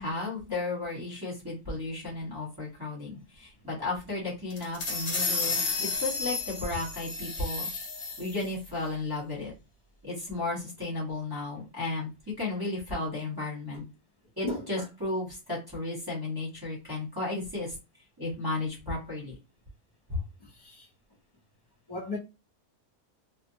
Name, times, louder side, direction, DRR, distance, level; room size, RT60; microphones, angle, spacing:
voice 1, 0.0-7.7 8.2-9.5 10.0-12.1 12.4-13.9 14.4-17.8 18.2-19.3 20.1-20.2, left 2 dB, 15° right, 0.9 m, -34 dB
sound 1, 4.5-8.5, left 4 dB, 50° left, 0.8 m, -32 dB
voice 2, 14.4-14.8 20.4-20.9 21.9-22.2, left 1 dB, 15° left, 1.1 m, -36 dB
2.7 x 2.3 x 2.7 m
omnidirectional pair, 1.6 m